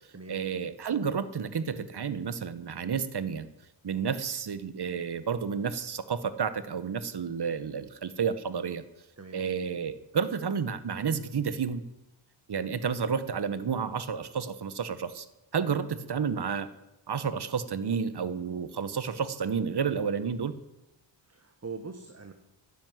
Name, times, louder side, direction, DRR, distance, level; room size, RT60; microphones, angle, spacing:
voice 1, 0.3-3.5 3.8-8.8 9.3-11.8 12.5-15.3 15.5-16.7 17.1-20.5, right 6 dB, 55° right, 14 dB, 1.2 m, -31 dB
voice 2, 21.2-22.3, right 4 dB, 30° right, 6 dB, 1.4 m, -42 dB
12.0 x 9.9 x 9.4 m, 0.94 s
wide cardioid pair, 85°, 48 cm